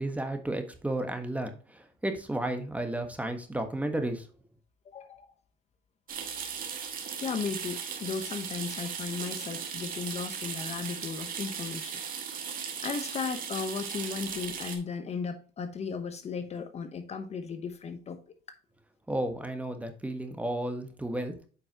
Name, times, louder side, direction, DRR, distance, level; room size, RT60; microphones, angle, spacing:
voice 1, 0.0-4.3 19.1-21.4, right 1 dB, 10° right, 1.3 m, -33 dB
voice 2, 4.8-5.3 7.2-12.0 12.8-18.2, left 5 dB, 40° left, 0.9 m, -35 dB
sound 1, 6.1-14.8, right 7 dB, 55° right, 1.7 m, -37 dB
9.0 x 5.4 x 2.9 m
cardioid pair, 110°, 17 cm